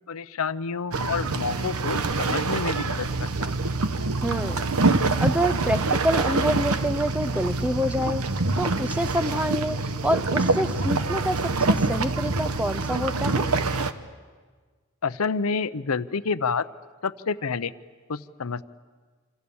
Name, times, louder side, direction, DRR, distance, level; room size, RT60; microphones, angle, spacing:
voice 1, 0.1-3.5 15.0-16.7 17.0-17.7 18.1-18.6, left 5 dB, 80° left, 14 dB, 0.7 m, -28 dB
sound 1, 0.9-13.9, right 3 dB, 85° right, 1.1 m, -25 dB
voice 2, 4.2-4.7 5.0-8.2 8.6-13.5, equal, 5° right, 12 dB, 0.7 m, -27 dB
27.5 x 27.0 x 7.1 m, 1.5 s
head